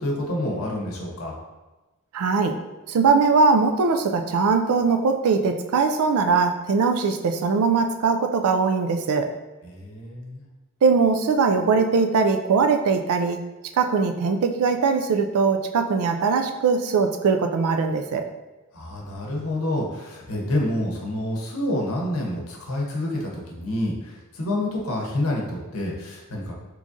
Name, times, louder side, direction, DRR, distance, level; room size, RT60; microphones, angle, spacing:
voice 1, 0.0-1.4 9.6-10.4 18.7-26.5, left 1 dB, 80° left, -1 dB, 0.8 m, -28 dB
voice 2, 2.1-2.6 2.9-9.3 10.8-13.4 13.8-18.3, right 4 dB, 80° right, 6 dB, 0.4 m, -21 dB
3.6 x 3.0 x 2.6 m, 1.1 s
head